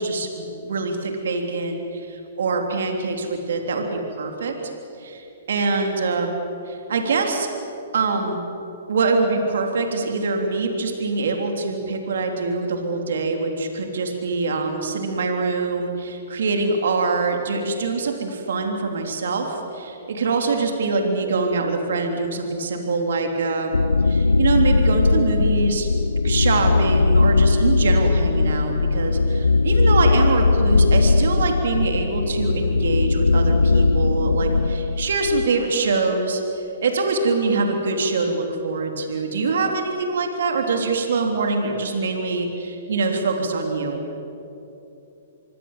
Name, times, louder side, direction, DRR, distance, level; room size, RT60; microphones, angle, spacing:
voice 1, 0.0-4.5 5.0-6.3 6.7-7.5 7.9-8.4 8.9-23.7 24.1-25.9 26.2-44.0, right 3 dB, 70° right, 3 dB, 3.6 m, -24 dB
sound 1, 23.7-35.5, left 3 dB, 90° left, 0.6 m, -19 dB
26.0 x 23.5 x 7.6 m, 2.9 s
hypercardioid pair, 125°, 0 cm